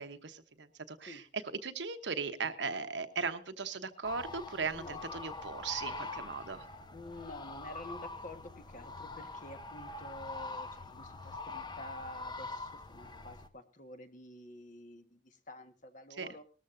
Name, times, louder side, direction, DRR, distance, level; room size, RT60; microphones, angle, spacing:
voice 1, 0.0-6.6 16.2-16.3, right 5 dB, 65° right, 9 dB, 1.1 m, -38 dB
sound 1, 4.0-13.5, left 3 dB, 25° left, 0.8 m, -44 dB
voice 2, 4.7-5.0 6.4-16.4, left 1 dB, 45° left, 7 dB, 1.5 m, -49 dB
19.5 x 13.5 x 2.6 m, 0.35 s
head